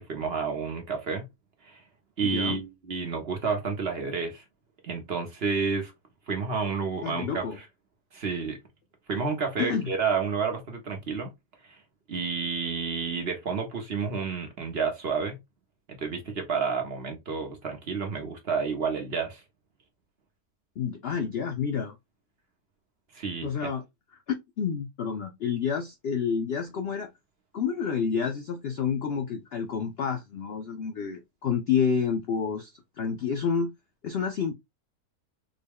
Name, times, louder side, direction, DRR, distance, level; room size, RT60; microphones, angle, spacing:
voice 1, 0.1-1.3 1.6-1.8 2.2-4.4 4.8-5.9 6.3-7.6 8.1-8.6 9.1-11.3 11.7-11.8 12.1-15.4 15.9-19.4 23.1-23.7, right 5 dB, 50° right, 0.8 m, -30 dB
voice 2, 2.2-2.6 7.0-7.6 9.6-9.9 20.8-22.0 23.4-23.8 24.6-27.1 27.5-33.7 34.0-34.5, left 6 dB, 70° left, 0.6 m, -29 dB
3.8 x 2.2 x 3.4 m
omnidirectional pair, 1.6 m